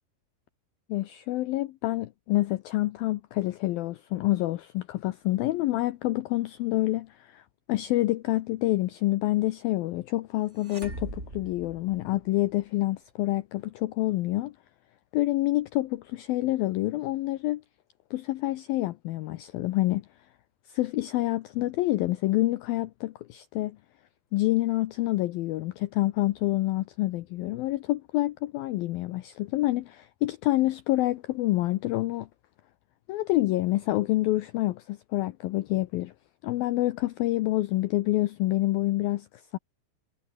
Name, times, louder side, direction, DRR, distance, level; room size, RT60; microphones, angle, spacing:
voice 1, 0.9-7.4 7.7-14.5 15.1-17.6 18.1-20.0 20.7-23.8 24.3-32.3 33.1-36.1 36.4-39.3 39.5-39.6, left 17 dB, 90° left, 2.1 m, -27 dB
sound 1, 10.6-12.6, right 2 dB, 15° right, 4.3 m, -41 dB
omnidirectional pair, 5.2 m